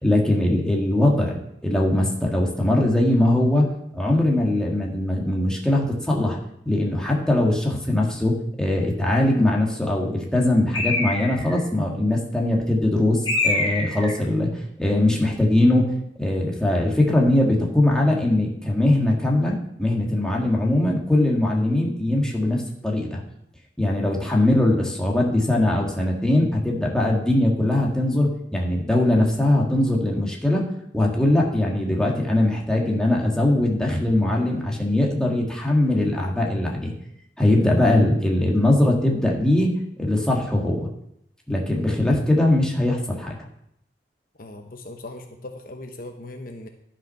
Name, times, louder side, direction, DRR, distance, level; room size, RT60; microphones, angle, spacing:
voice 1, 0.0-3.6 3.9-6.4 6.6-14.5 14.8-15.9 16.2-23.2 23.8-30.6 30.9-36.9 37.4-39.7 40.0-40.9 41.5-43.4, left 1 dB, 5° left, -2 dB, 1.8 m, -21 dB
Bird, 10.7-11.6 13.3-14.2, left 2 dB, 25° left, 2.5 m, -24 dB
voice 2, 44.4-46.7, left 2 dB, 50° left, 4 dB, 0.9 m, -39 dB
12.0 x 5.8 x 5.8 m, 0.75 s
head